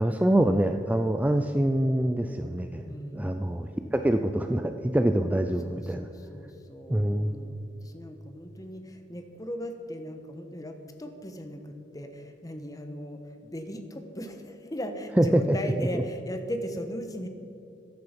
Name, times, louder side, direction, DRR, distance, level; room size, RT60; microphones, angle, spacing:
voice 1, 0.0-2.8 3.1-6.1 6.9-7.4 15.2-16.0, right 1 dB, 10° right, 7 dB, 0.4 m, -25 dB
voice 2, 2.9-3.4 5.6-17.3, equal, 20° left, 6 dB, 1.2 m, -38 dB
14.0 x 10.5 x 5.2 m, 2.9 s
head